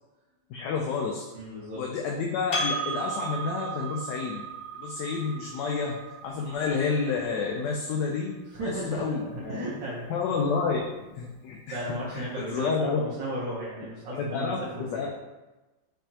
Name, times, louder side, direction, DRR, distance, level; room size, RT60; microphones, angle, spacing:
voice 1, 0.5-1.2 1.7-4.5 4.8-9.6 10.1-10.8 11.2-11.8 12.1-13.0 14.1-15.1, left 5 dB, 75° left, -1 dB, 1.1 m, -30 dB
voice 2, 1.3-1.8 8.5-10.1 11.7-15.1, right 1 dB, 75° right, -9 dB, 1.8 m, -35 dB
Percussion, 2.5-7.3, right 3 dB, 35° left, 0.9 m, -35 dB
5.3 x 3.5 x 2.8 m, 1.1 s
omnidirectional pair, 2.1 m